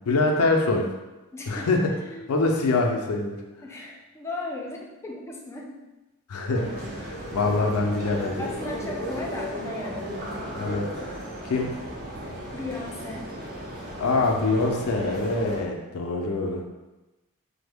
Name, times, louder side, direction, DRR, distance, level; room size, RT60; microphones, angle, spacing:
voice 1, 0.1-0.9 1.5-2.0 2.3-3.4 6.3-8.5 10.5-11.1 11.4-11.8 14.0-16.6, left 3 dB, 85° left, 2 dB, 0.5 m, -24 dB
voice 2, 1.3-1.7 2.1-2.7 3.6-5.8 8.4-10.4 12.5-13.3, left 2 dB, 10° left, -1 dB, 0.3 m, -37 dB
sound 1, 6.5-15.6, equal, 45° right, 0.6 m, -35 dB
3.3 x 2.0 x 3.4 m, 1.1 s
head